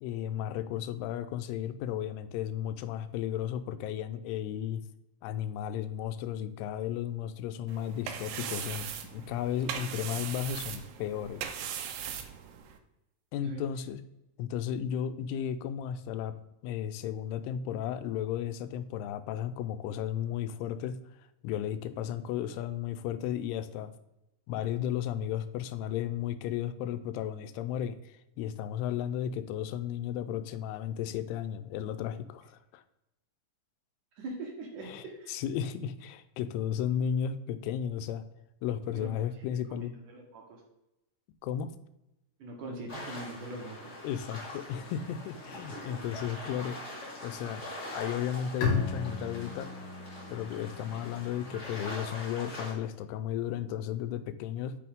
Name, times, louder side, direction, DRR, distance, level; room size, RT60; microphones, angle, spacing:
voice 1, 0.0-4.8 5.2-11.4 13.3-14.0 14.4-16.3 16.6-21.0 21.4-23.9 24.5-32.8 34.8-38.2 38.6-39.9 41.4-41.7 44.0-46.8 47.1-47.6 47.9-49.7 50.3-54.8, left 9 dB, 85° left, 11 dB, 2.6 m, -34 dB
sound 1, 7.7-12.8, right 8 dB, 80° right, 2.1 m, -39 dB
voice 2, 34.2-35.3 38.9-39.1 39.7-40.6 42.4-43.9 45.5-46.0, right 2 dB, 65° right, 0 dB, 2.4 m, -42 dB
sound 2, 42.9-52.7, left 1 dB, 35° left, 1.1 m, -43 dB
Bowed string instrument, 48.6-52.1, left 5 dB, 55° left, 2.3 m, -35 dB
8.5 x 5.7 x 3.6 m, 0.90 s
omnidirectional pair, 4.6 m